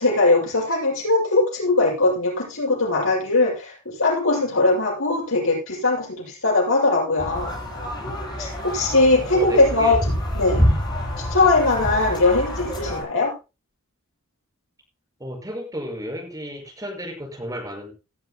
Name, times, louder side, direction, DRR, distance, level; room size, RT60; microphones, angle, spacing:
voice 1, 0.0-7.5 8.4-10.0 10.3-10.7 11.2-13.3, left 2 dB, 75° left, -3 dB, 7.7 m, -20 dB
sound 1, 7.2-13.0, equal, 20° left, 7.9 m, -26 dB
voice 2, 9.3-9.9 15.2-17.9, equal, 15° right, 1 dB, 5.8 m, -33 dB
18.0 x 12.5 x 2.2 m, 0.28 s
head